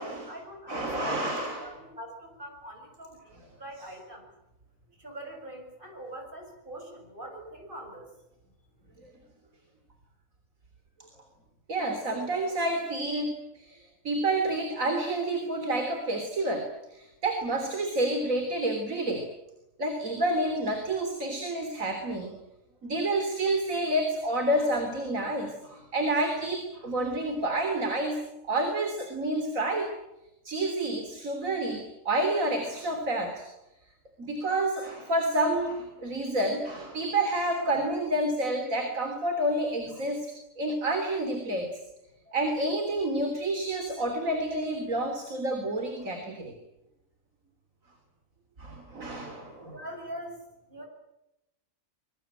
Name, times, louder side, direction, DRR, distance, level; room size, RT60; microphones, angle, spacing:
voice 1, 0.0-4.3 5.0-8.1 49.7-50.4 50.7-50.9, right 1 dB, 40° right, 2 dB, 7.5 m, -43 dB
voice 2, 0.7-1.7 9.0-9.1 11.7-19.3 19.8-22.3 22.8-28.2 28.4-29.9 30.5-33.5 34.2-40.3 40.6-41.7 42.3-46.6 48.6-49.8, right 1 dB, 85° right, 5 dB, 3.8 m, -29 dB
24.5 x 23.0 x 9.0 m, 0.90 s
omnidirectional pair, 1.4 m